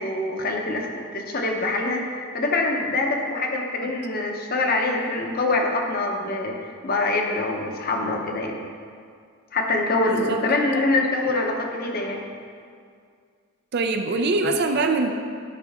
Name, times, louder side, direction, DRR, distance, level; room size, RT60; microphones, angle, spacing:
voice 1, 0.0-2.1 2.3-8.6 9.5-12.2, left 2 dB, 45° left, 1 dB, 0.8 m, -24 dB
voice 2, 10.1-10.4 11.0-11.3 13.7-15.1, right 3 dB, 50° right, 5 dB, 0.5 m, -24 dB
10.0 x 5.3 x 3.6 m, 2.2 s
head